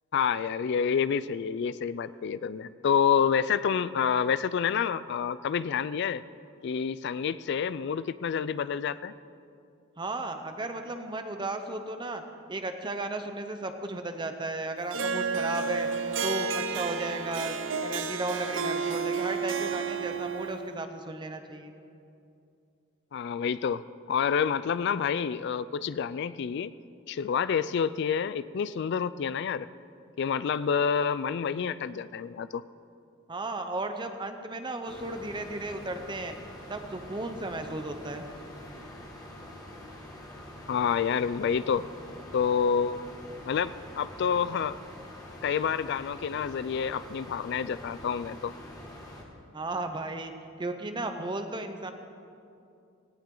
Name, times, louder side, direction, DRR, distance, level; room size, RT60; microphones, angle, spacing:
voice 1, 0.1-6.2 6.6-9.1 23.1-23.8 24.1-26.7 27.1-29.7 30.2-32.6 40.7-41.9 42.3-43.1 43.4-44.8 45.4-48.5, left 7 dB, 55° left, 16 dB, 0.3 m, -28 dB
voice 2, 10.0-12.2 12.5-15.9 16.2-21.7 33.3-36.3 36.7-38.2 49.5-50.3 50.6-51.9, right 2 dB, 25° right, 7 dB, 0.7 m, -34 dB
Harp, 14.9-20.7, right 5 dB, 65° right, 0.7 m, -31 dB
sound 1, 34.9-49.2, left 1 dB, 20° left, 1.8 m, -45 dB
18.0 x 17.0 x 3.8 m, 2.6 s
head